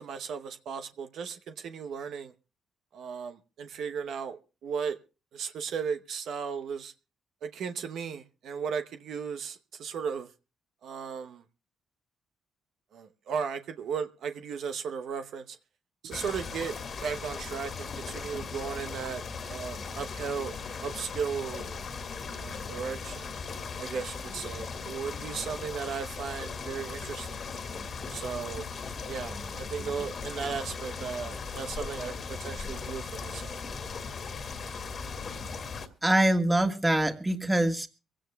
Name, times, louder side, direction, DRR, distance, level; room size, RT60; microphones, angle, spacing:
voice 1, 0.0-2.3 2.9-5.0 5.3-6.9 7.4-10.3 10.8-11.4 12.9-15.6 16.0-16.7 17.0-20.5 20.8-21.8 22.3-23.3 23.8-27.4 28.1-28.6 29.1-33.6, right 6 dB, 70° right, 0.9 m, -36 dB
sound 1, 16.1-35.9, left 5 dB, 50° left, 1.9 m, -38 dB
voice 2, 36.0-37.9, right 1 dB, 15° right, 1.6 m, -24 dB
24.0 x 16.5 x 2.3 m
cardioid pair, 90°, 0 cm